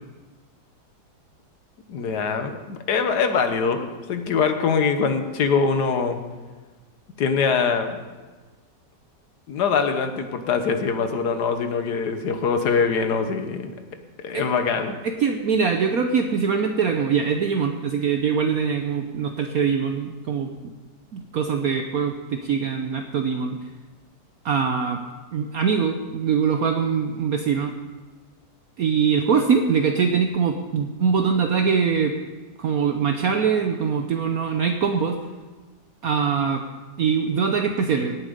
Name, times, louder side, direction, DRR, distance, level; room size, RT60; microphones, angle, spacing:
voice 1, 1.9-6.2 7.2-8.0 9.5-13.7 14.2-15.0, left 5 dB, 65° left, 7 dB, 1.6 m, -23 dB
voice 2, 15.0-20.5 21.1-23.6 24.4-25.0 25.3-27.7 28.8-32.1 32.6-35.2 36.0-36.6 37.0-38.2, right 6 dB, 60° right, 4 dB, 1.1 m, -23 dB
17.5 x 9.0 x 5.2 m, 1.3 s
omnidirectional pair, 2.0 m